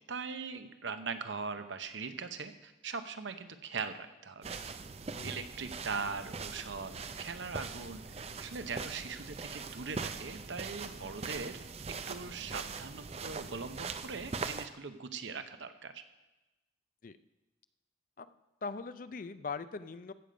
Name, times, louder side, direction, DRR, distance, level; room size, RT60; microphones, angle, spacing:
voice 1, 0.1-4.6 5.2-11.6 12.1-16.0, right 5 dB, 75° right, 9 dB, 0.8 m, -41 dB
sound 1, 4.4-14.7, right 4 dB, 30° right, 0.5 m, -42 dB
voice 2, 18.6-20.1, left 4 dB, 45° left, 13 dB, 0.4 m, -41 dB
15.5 x 6.9 x 5.1 m, 1.0 s
head